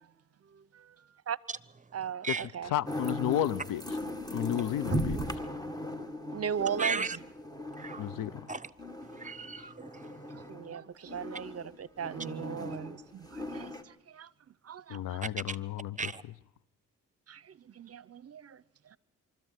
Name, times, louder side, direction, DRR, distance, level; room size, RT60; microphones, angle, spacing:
voice 1, 1.9-2.7 6.3-7.1 9.6-9.7 10.3-14.3 14.6-15.2 17.3-18.6, right 7 dB, 50° right, 0.8 m, -38 dB
voice 2, 2.6-3.8 4.3-5.2 8.0-8.4 14.9-16.1, left 12 dB, 85° left, 0.7 m, -32 dB
sound 1, 2.9-10.7 11.1-13.8, left 1 dB, 10° left, 2.0 m, -38 dB
voice 3, 6.8-7.2 7.8-8.1 8.5-8.7 9.0-10.2 15.5-15.6 16.0-16.2, right 4 dB, 25° right, 1.0 m, -35 dB
24.5 x 13.5 x 9.2 m
cardioid pair, 65°, 32 cm